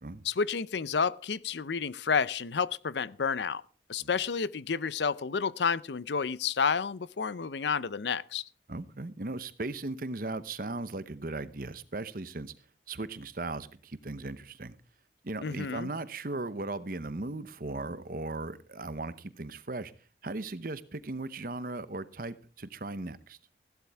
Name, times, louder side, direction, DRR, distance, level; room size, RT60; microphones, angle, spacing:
voice 1, 0.2-3.6 3.9-8.4 15.4-15.9, left 5 dB, 75° left, 0.6 m, -30 dB
voice 2, 8.7-12.5 12.9-14.8 15.2-19.9 20.2-23.4, right 2 dB, 50° right, 0.9 m, -37 dB
15.5 x 12.0 x 3.5 m
head